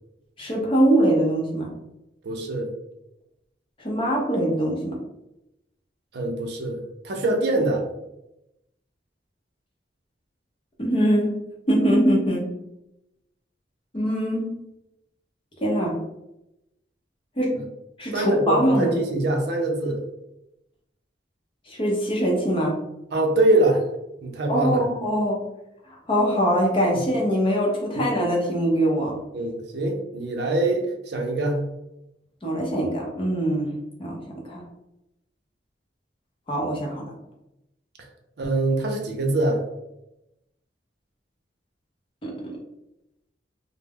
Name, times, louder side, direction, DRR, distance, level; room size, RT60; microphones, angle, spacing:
voice 1, 0.4-1.7 3.8-5.0 10.8-11.3 11.7-12.5 13.9-14.5 15.6-16.0 17.4-17.6 18.0-18.9 21.7-22.8 24.5-25.4 26.1-29.2 32.4-33.7 34.0-34.6 36.5-37.1 42.2-42.6, equal, 30° left, -2 dB, 0.6 m, -23 dB
voice 2, 2.2-2.7 6.1-7.8 17.6-17.7 18.1-20.0 23.1-23.8 24.2-24.8 29.3-31.6 38.4-39.6, right 2 dB, 65° right, 2 dB, 0.5 m, -23 dB
2.2 x 2.0 x 3.4 m, 0.89 s
head